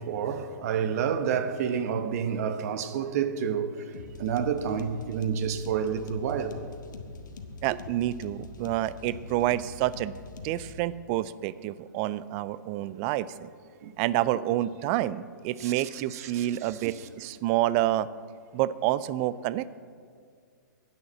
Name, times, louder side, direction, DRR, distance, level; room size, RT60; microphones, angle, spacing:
voice 1, 0.0-3.9 4.2-6.6 13.8-13.9 15.6-15.7 16.1-16.9, right 7 dB, 50° right, 1.0 m, -29 dB
sound 1, 3.9-10.8, left 4 dB, 75° left, 1.2 m, -43 dB
voice 2, 7.6-10.1 10.4-13.5 14.0-18.1 18.5-19.8, right 14 dB, 35° right, 0.4 m, -28 dB
10.5 x 8.7 x 7.3 m
hypercardioid pair, 130°, 10 cm